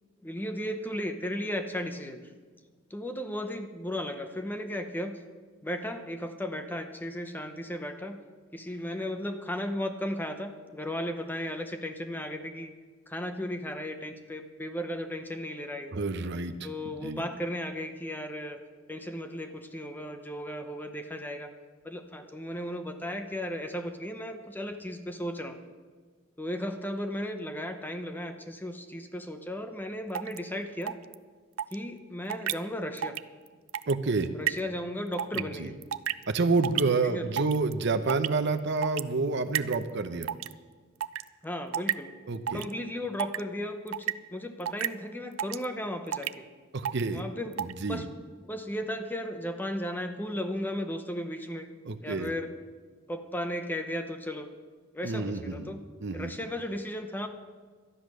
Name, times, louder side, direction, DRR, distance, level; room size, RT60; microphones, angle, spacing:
voice 1, 0.2-2.2 2.9-5.2 5.6-8.2 8.5-12.7 13.1-15.9 16.6-18.6 18.9-21.5 21.8-25.6 26.4-31.0 31.7-33.2 34.3-35.8 37.0-37.6 41.4-42.1 42.5-46.4 47.1-47.5 47.9-48.1 48.4-51.7 52.0-52.5 53.1-54.5 54.9-55.8 56.1-57.3, left 1 dB, 10° left, 7 dB, 0.8 m, -35 dB
voice 2, 15.9-16.7 17.0-17.2 33.9-34.3 35.3-35.7 36.3-40.3 42.3-42.6 46.7-47.2 47.6-48.1 51.9-52.3 55.0-55.7 56.0-56.3, right 3 dB, 60° right, 9 dB, 0.8 m, -29 dB
sound 1, 30.2-30.4 30.9-31.1 31.6-31.8 32.3-32.5 33.0-33.2 33.5-33.9 34.5-34.6 35.2-35.4 35.8-36.2 36.6-36.8 37.4-37.7 38.1-38.3 38.8-39.0 39.6-39.8 40.2-40.5 41.0-41.2 41.7-41.9 42.5-42.7 43.2-43.4 43.9-44.1 44.7-44.9 45.4-45.7 46.1-46.3 46.9-47.0 47.5-47.7, right 10 dB, 80° right, 0.4 m, -30 dB
12.5 x 10.0 x 6.3 m, 1.5 s
head